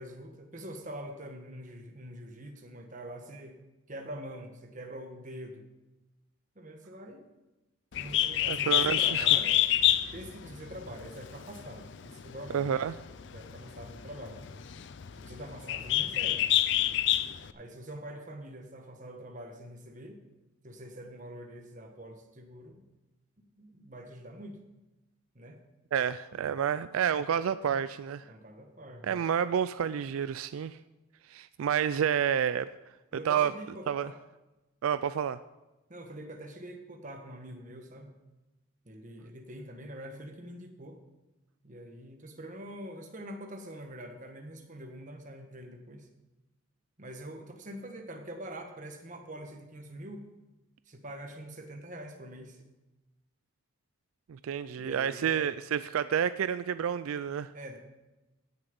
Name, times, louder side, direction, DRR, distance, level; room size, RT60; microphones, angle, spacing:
voice 1, 0.0-3.6 3.9-5.7 6.5-7.3 7.9-9.6 10.1-12.6 13.3-14.4 15.1-16.4 17.5-20.2 20.6-22.8 23.4-24.6 25.3-25.6 28.2-29.2 33.1-34.2 35.9-38.1 38.8-41.0 41.6-46.1 47.0-50.2 50.9-52.6 54.8-55.5 57.5-57.8, right 1 dB, 35° right, 1.4 m, -44 dB
Bird, 7.9-17.5, left 13 dB, 55° left, 0.5 m, -28 dB
voice 2, 8.5-9.3 12.5-13.0 25.9-28.2 29.0-30.8 31.3-32.7 33.3-33.5 33.9-34.1 34.8-35.4 54.3-57.5, right 8 dB, 80° right, 0.3 m, -29 dB
16.0 x 6.9 x 5.3 m
head